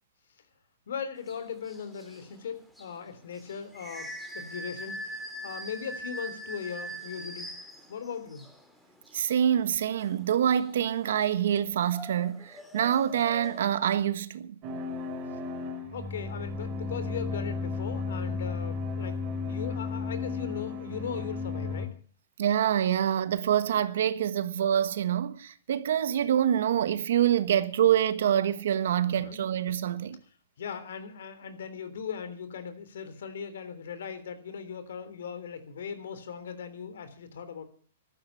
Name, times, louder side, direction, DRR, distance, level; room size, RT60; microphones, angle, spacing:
voice 1, 0.9-7.5 7.9-8.5 15.9-19.2 19.5-21.9 29.0-29.4 30.6-37.6, left 7 dB, 75° left, 3.3 m, -39 dB
sound 1, 1.2-13.8, equal, 5° left, 2.6 m, -43 dB
voice 2, 9.1-14.6 22.4-30.2, right 10 dB, 70° right, 1.4 m, -26 dB
sound 2, 14.6-21.9, left 4 dB, 30° right, 3.7 m, -34 dB
14.5 x 12.0 x 7.1 m
hypercardioid pair, 150°, 0 cm